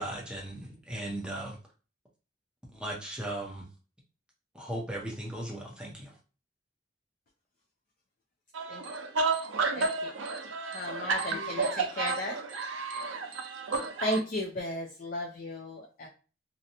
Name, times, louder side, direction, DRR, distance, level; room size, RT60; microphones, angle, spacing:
voice 1, 0.0-1.6 2.7-3.7 4.5-6.2, right 1 dB, 5° right, 0.6 m, -37 dB
voice 2, 8.5-14.2, right 4 dB, 90° right, 0.5 m, -32 dB
voice 3, 10.7-11.6 12.0-12.4 14.0-16.1, left 1 dB, 45° left, 0.4 m, -34 dB
2.6 x 2.0 x 2.7 m
head